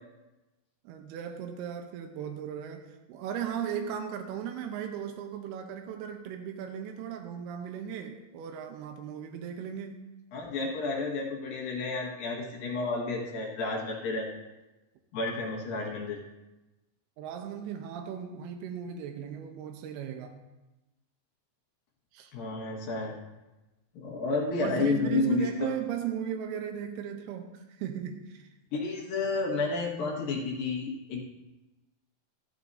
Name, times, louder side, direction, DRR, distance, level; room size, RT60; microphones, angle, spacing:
voice 1, 0.8-10.1 17.2-20.4 22.1-22.3 24.6-28.5, right 9 dB, 90° right, 5 dB, 2.8 m, -37 dB
voice 2, 10.3-14.3 15.1-16.2 22.3-23.2 23.9-25.7 28.7-31.2, left 3 dB, 65° left, -3 dB, 3.3 m, -31 dB
14.0 x 13.0 x 2.7 m, 1.0 s
omnidirectional pair, 4.6 m